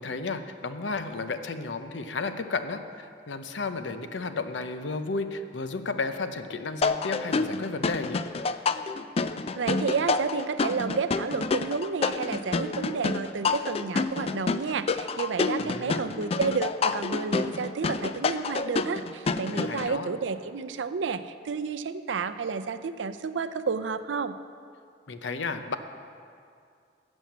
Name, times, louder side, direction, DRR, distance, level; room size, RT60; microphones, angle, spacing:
voice 1, 0.0-8.2 15.6-16.1 19.5-20.1 25.1-25.8, left 3 dB, 85° left, 9 dB, 0.7 m, -33 dB
sound 1, 6.8-19.9, left 4 dB, 35° left, 0.3 m, -28 dB
voice 2, 9.6-24.3, right 5 dB, 85° right, 11 dB, 0.5 m, -31 dB
11.5 x 7.1 x 7.3 m, 2.3 s
head